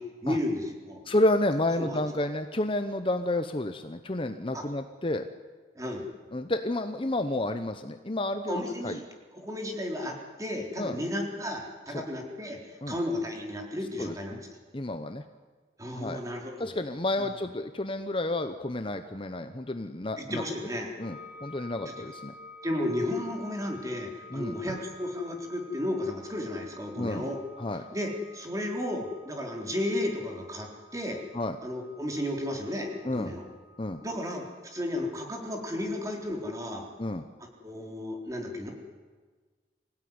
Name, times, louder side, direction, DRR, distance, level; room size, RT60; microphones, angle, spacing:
voice 1, 0.0-1.0 1.8-2.0 4.5-4.7 5.8-6.1 8.5-9.0 9.3-14.5 15.8-16.7 17.2-17.3 20.2-20.9 22.0-22.1 22.6-27.4 27.9-31.2 31.6-33.5 34.0-36.9 37.6-38.7, left 1 dB, 20° right, 1 dB, 3.9 m, -33 dB
voice 2, 1.0-5.3 6.3-9.0 10.8-11.0 11.9-12.0 12.8-13.0 14.0-14.4 14.7-15.2 15.9-16.2 16.6-20.4 21.0-22.3 24.3-24.6 27.0-27.3 27.6-27.8 31.3-31.6 33.0-33.3 33.8-34.0 37.0-37.2, left 1 dB, 30° left, 8 dB, 0.9 m, -30 dB
sound 1, 21.0-35.3, left 3 dB, 55° left, 3.5 m, -51 dB
25.5 x 16.5 x 9.7 m, 1.4 s
head